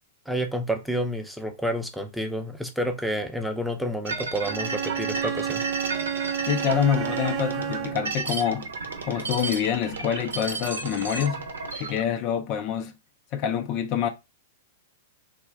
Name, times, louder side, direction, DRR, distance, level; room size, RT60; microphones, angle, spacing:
voice 1, 0.3-5.6, equal, ahead, 0.6 m, -29 dB
sound 1, 4.1-12.0, right 4 dB, 85° right, 0.7 m, -33 dB
Bowed string instrument, 4.4-8.2, right 9 dB, 35° right, 0.3 m, -31 dB
voice 2, 6.5-8.7 9.0-11.5 11.7-12.9 13.3-14.1, left 9 dB, 45° left, 0.4 m, -26 dB
3.3 x 2.4 x 3.3 m
hypercardioid pair, 120°, 0 cm